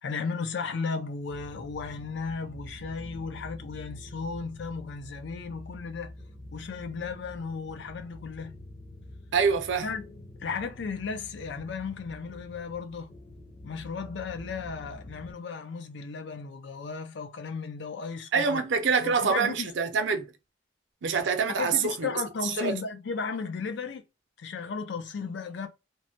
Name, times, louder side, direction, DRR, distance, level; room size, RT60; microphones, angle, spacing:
voice 1, 0.0-6.1 6.5-8.6 9.8-10.0 10.4-13.1 13.6-18.6 19.0-19.7 21.6-24.0 24.4-25.7, left 5 dB, 70° left, 0.4 m, -35 dB
sound 1, 1.3-15.3, left 1 dB, 35° left, 0.7 m, -46 dB
voice 2, 9.3-9.9 18.3-20.3 21.0-22.1 22.4-22.8, right 5 dB, 70° right, 0.5 m, -25 dB
3.1 x 2.1 x 2.6 m
head